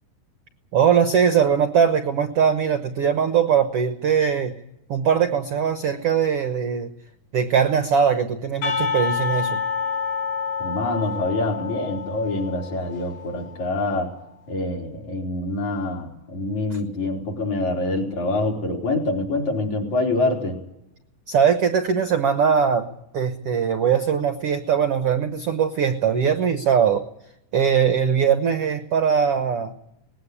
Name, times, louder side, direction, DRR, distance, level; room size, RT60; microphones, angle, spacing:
voice 1, 0.7-4.6 4.9-6.9 7.3-9.6 21.3-27.0 27.5-29.7, right 7 dB, 75° right, 9 dB, 1.3 m, -21 dB
Percussion, 8.6-13.5, left 6 dB, 75° left, 5.7 m, -28 dB
voice 2, 10.6-14.1 14.5-20.6, left 2 dB, 50° left, -1 dB, 5.7 m, -25 dB
20.0 x 17.0 x 9.9 m, 0.84 s
omnidirectional pair, 4.2 m